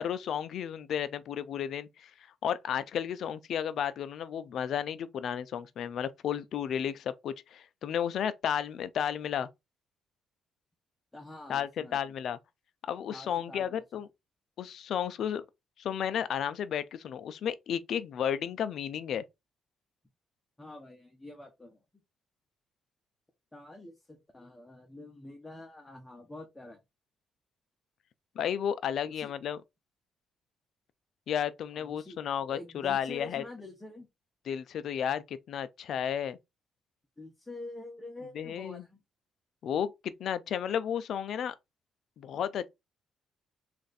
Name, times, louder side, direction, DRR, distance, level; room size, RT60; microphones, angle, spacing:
voice 1, 0.0-2.1 2.4-9.5 11.5-12.4 12.8-14.1 14.6-15.5 15.8-19.2 28.4-29.6 31.3-33.4 34.5-36.4 38.4-38.8 39.6-41.5 42.2-42.7, left 9 dB, 70° left, 0.4 m, -33 dB
voice 2, 11.1-12.1 13.1-14.0 20.6-21.8 23.5-26.8 29.0-29.3 31.7-34.1 37.2-39.0, left 2 dB, 10° left, 0.9 m, -46 dB
3.2 x 2.5 x 4.0 m
cardioid pair, 90°, 0 cm